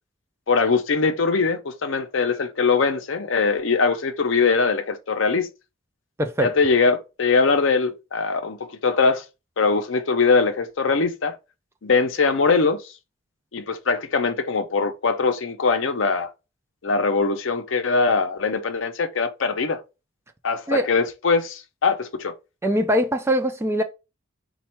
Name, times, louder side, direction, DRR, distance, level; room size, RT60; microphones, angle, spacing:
voice 1, 0.5-5.5 6.4-8.6 8.8-9.2 9.6-11.3 11.8-12.8 13.5-16.3 16.8-19.8 20.4-22.3, left 4 dB, 65° left, 0.6 m, -21 dB
voice 2, 6.2-6.5 20.7-20.9 22.6-23.8, equal, 10° right, 0.4 m, -22 dB
4.3 x 2.3 x 4.3 m
head